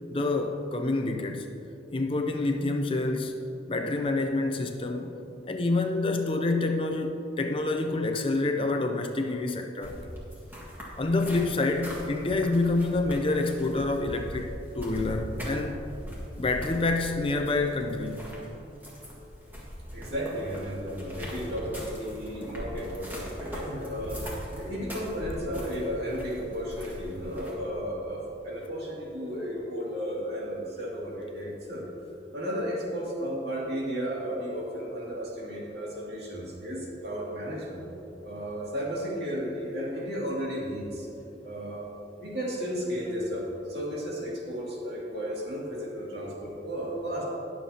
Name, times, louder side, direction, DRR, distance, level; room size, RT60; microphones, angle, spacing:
voice 1, 0.1-1.5 1.9-3.4 3.7-5.2 5.5-10.0 11.0-15.8 16.4-18.3, left 2 dB, 30° left, 5 dB, 0.5 m, -27 dB
sound 1, 9.8-27.5, equal, 10° right, 1.9 m, -40 dB
voice 2, 19.9-23.1 23.4-24.2 24.6-31.9 32.3-37.9 38.2-41.1 41.4-41.8 42.2-47.2, equal, 65° right, -5 dB, 2.5 m, -34 dB
19.5 x 7.2 x 2.9 m, 2.9 s
head